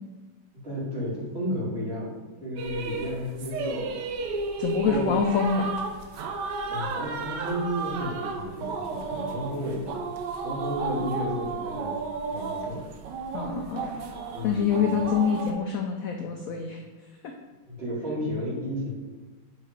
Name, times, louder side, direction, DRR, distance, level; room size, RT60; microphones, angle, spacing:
voice 1, 0.6-2.1 2.4-4.0 4.8-5.2 6.7-10.0 10.4-11.9 12.3-12.8 14.3-14.9 17.7-18.9, equal, 30° right, -6 dB, 2.3 m, -32 dB
sound 1, 2.6-15.5, right 4 dB, 70° right, 1.3 m, -33 dB
voice 2, 4.6-5.7 13.3-13.9 14.4-16.8, left 6 dB, 75° left, 3 dB, 0.8 m, -26 dB
7.4 x 3.9 x 4.9 m, 1.3 s
omnidirectional pair, 2.1 m